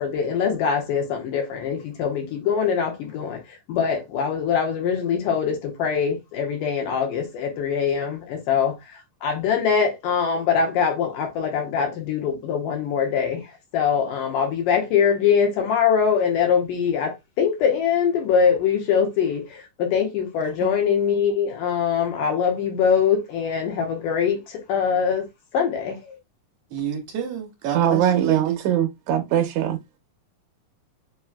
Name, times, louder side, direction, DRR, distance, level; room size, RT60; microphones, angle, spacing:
voice 1, 0.0-25.3 25.5-26.2, left 7 dB, 70° left, 2.4 m, -23 dB
voice 2, 26.7-28.6, right 9 dB, 50° right, 2.8 m, -28 dB
voice 3, 27.7-29.8, right 10 dB, 70° right, 2.0 m, -21 dB
7.3 x 3.1 x 2.2 m
omnidirectional pair, 4.3 m